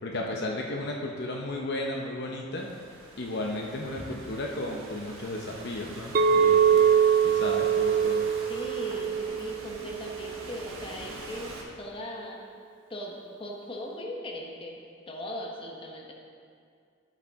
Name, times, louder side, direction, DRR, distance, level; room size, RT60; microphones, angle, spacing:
voice 1, 0.0-2.7 3.2-6.9 7.2-8.3, left 1 dB, 55° left, 0 dB, 0.7 m, -34 dB
Thunderstorm / Rain, 2.6-11.6, right 2 dB, 75° right, 1.3 m, -44 dB
Chink clink, 6.1-10.4, right 7 dB, 40° right, 0.3 m, -23 dB
voice 2, 8.5-12.4 12.9-14.8 15.1-16.1, left 1 dB, 25° left, -1 dB, 1.0 m, -39 dB
12.0 x 6.6 x 3.6 m, 2.3 s
head